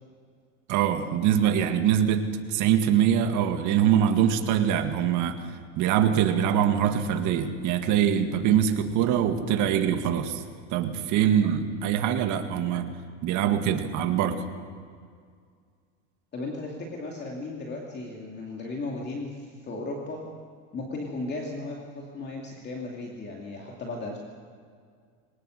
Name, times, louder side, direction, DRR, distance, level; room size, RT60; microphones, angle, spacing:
voice 1, 0.7-2.2 2.5-5.4 5.8-10.4 10.7-12.9 13.2-14.4, right 9 dB, 55° right, 7 dB, 2.0 m, -23 dB
voice 2, 16.3-20.2 20.7-24.2, left 2 dB, 30° left, -1 dB, 2.6 m, -35 dB
22.5 x 19.5 x 6.5 m, 2.1 s
supercardioid pair, 130°, 37 cm